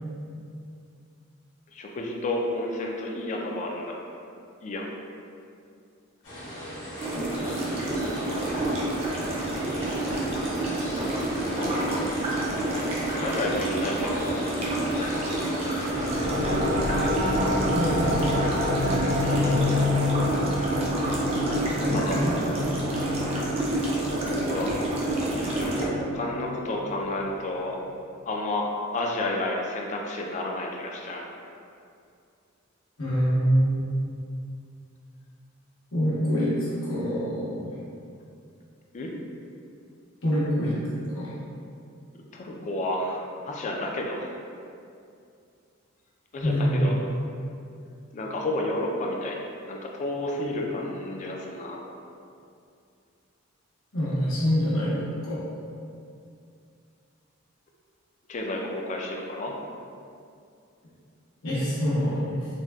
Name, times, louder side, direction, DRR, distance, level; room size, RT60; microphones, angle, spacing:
voice 1, 1.7-3.9 4.6-4.9 11.4-12.2 13.1-14.3 14.7-15.6 19.1-19.6 21.8-22.3 24.2-24.9 25.4-27.8 28.3-28.7 28.9-31.4 38.9-39.1 42.3-44.4 46.3-46.9 48.1-51.8 58.3-59.5, left 1 dB, 35° left, 0 dB, 0.3 m, -31 dB
sound 1, 6.2-19.9, equal, 65° left, 1.2 m, -38 dB
sound 2, 7.0-25.9, right 1 dB, 30° right, 0.5 m, -28 dB
voice 2, 7.1-8.0 17.7-18.3 19.4-19.8 21.8-22.3 33.0-33.8 35.9-37.7 40.2-40.8 41.1-41.3 46.4-46.9 53.9-55.4 61.4-62.5, equal, 85° left, -9 dB, 1.0 m, -26 dB
sound 3, 15.9-27.3, left 2 dB, 75° right, 0.9 m, -29 dB
3.9 x 2.1 x 2.3 m, 2.4 s
head